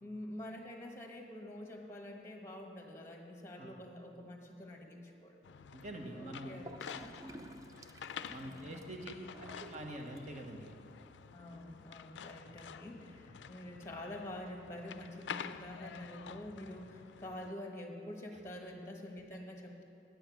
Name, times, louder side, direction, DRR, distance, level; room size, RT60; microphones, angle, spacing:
voice 1, 0.0-5.4 6.1-6.8 8.3-9.8 11.3-19.8, left 1 dB, 15° left, 2 dB, 1.1 m, -47 dB
sound 1, 5.4-17.5, left 7 dB, 80° left, 0.4 m, -49 dB
voice 2, 5.7-6.6 8.3-9.1 9.6-10.7, right 1 dB, 45° right, 2 dB, 1.1 m, -45 dB
Gurgling / Toilet flush, 6.6-10.6, right 1 dB, 20° right, 0.4 m, -53 dB
9.2 x 8.8 x 6.0 m, 2.6 s
head